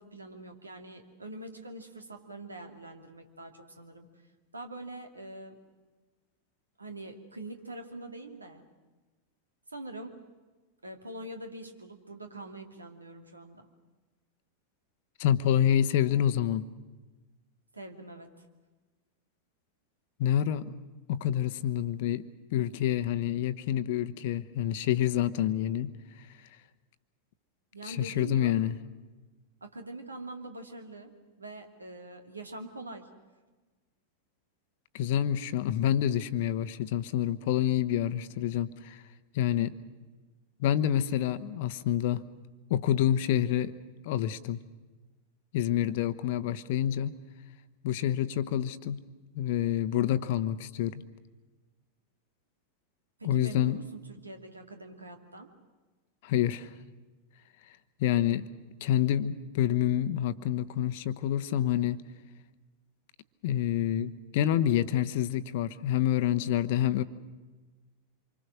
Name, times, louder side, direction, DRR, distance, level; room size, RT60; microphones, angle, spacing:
voice 1, 0.0-4.1 4.5-5.6 6.8-8.6 9.7-10.1 10.8-13.7 17.7-18.3 27.7-28.5 29.6-33.1 53.2-55.5, right 2 dB, 80° right, 5 dB, 2.5 m, -44 dB
voice 2, 15.2-16.6 20.2-20.7 21.1-22.2 22.5-25.9 27.8-28.7 34.9-39.0 39.3-39.7 40.6-42.2 42.7-43.7 44.0-44.6 45.5-47.1 47.8-49.0 49.3-51.0 53.2-53.8 56.2-56.7 58.0-58.5 58.8-62.0 63.4-67.0, left 11 dB, 50° left, 12 dB, 1.0 m, -27 dB
27.0 x 24.5 x 6.4 m, 1.3 s
figure-of-eight pair, 90°, 0 cm